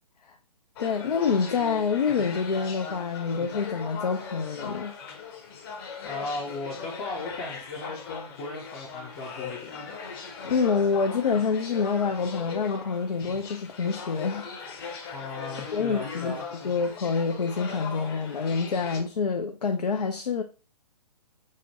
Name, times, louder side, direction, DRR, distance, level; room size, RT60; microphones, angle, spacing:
voice 1, 0.8-4.9 10.4-15.3 15.7-16.3 16.6-20.4, left 5 dB, 70° left, 0.6 m, -27 dB
sound 1, 0.8-19.0, left 5 dB, 35° left, 0.9 m, -39 dB
voice 2, 6.0-10.0 15.1-16.4, left 3 dB, 20° left, 0.6 m, -37 dB
6.2 x 2.1 x 2.7 m
figure-of-eight pair, 130°, 21 cm